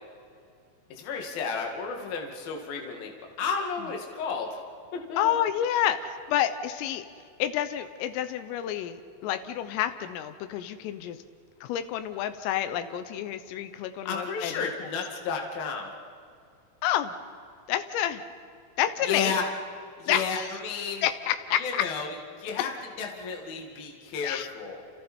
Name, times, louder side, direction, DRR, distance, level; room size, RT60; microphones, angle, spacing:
voice 1, 0.9-3.1 3.4-4.6 4.9-5.3 14.0-15.9 19.1-19.5 20.0-21.1 21.6-22.7 23.0-24.8, left 5 dB, 55° left, 1 dB, 3.5 m, -32 dB
voice 2, 5.2-7.1 7.4-11.2 11.6-14.7 16.8-17.1 17.7-18.2 18.8-19.4 20.1-20.5 21.0-21.9 24.2-24.5, left 11 dB, 90° left, 10 dB, 3.6 m, -29 dB
29.5 x 29.0 x 4.4 m, 2.3 s
omnidirectional pair, 5.7 m